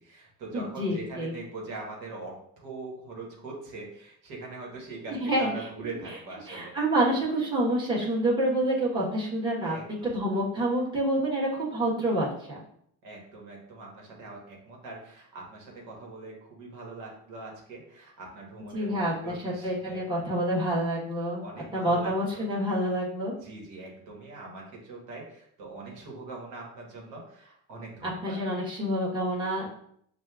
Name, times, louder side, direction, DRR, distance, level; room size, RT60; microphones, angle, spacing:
voice 1, 0.0-6.7 9.6-10.2 13.0-20.1 21.4-22.5 23.4-28.4, right 3 dB, 80° right, -2 dB, 1.4 m, -42 dB
voice 2, 0.5-1.3 5.1-5.5 6.5-9.7 10.0-12.6 18.7-21.4 21.7-23.3 28.0-29.7, right 1 dB, 15° right, -6 dB, 1.1 m, -27 dB
6.3 x 2.4 x 2.3 m, 0.68 s
cardioid pair, 125°, 34 cm